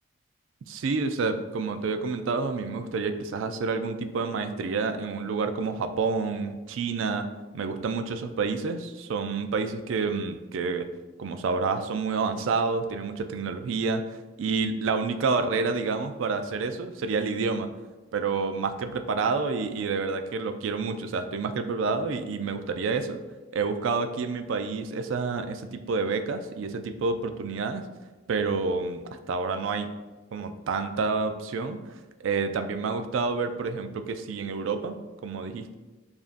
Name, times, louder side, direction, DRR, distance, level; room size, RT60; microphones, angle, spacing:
voice 1, 0.7-7.3 7.5-10.9 11.2-14.0 14.4-17.7 18.1-23.2 23.5-27.8 28.3-29.9 30.3-31.8 32.2-35.0 35.2-35.8, right 4 dB, 80° right, 7 dB, 0.4 m, -28 dB
7.1 x 2.6 x 2.5 m, 1.2 s
head